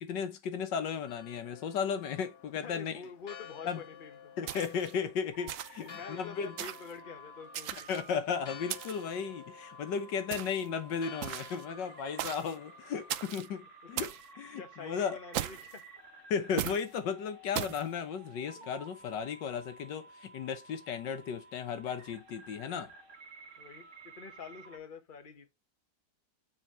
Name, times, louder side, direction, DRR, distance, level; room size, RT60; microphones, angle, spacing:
voice 1, 0.0-2.9 3.7-3.8 4.4-6.5 7.9-13.6 13.9-14.1 14.4-15.2 16.3-22.9, left 6 dB, 80° left, 1.7 m, -35 dB
Church bell, 1.1-13.2, left 7 dB, 65° left, 1.8 m, -53 dB
voice 2, 2.5-4.3 5.8-7.9 13.4-14.1 14.5-15.9 18.5-18.7 22.5-22.9 23.6-25.5, left 5 dB, 30° left, 1.3 m, -47 dB
sound 1, 4.5-4.9 5.5-5.9 6.6-6.9 7.5-8.1 8.7-9.1 10.3-10.7 11.2-11.6 12.2-12.5 13.1-13.5 14.0-14.2 15.3-15.8 16.6-16.8 17.5-17.8, right 12 dB, 70° right, 0.7 m, -37 dB
sound 2, 5.3-24.8, right 2 dB, 45° right, 2.0 m, -54 dB
7.5 x 4.3 x 4.3 m
omnidirectional pair, 1.9 m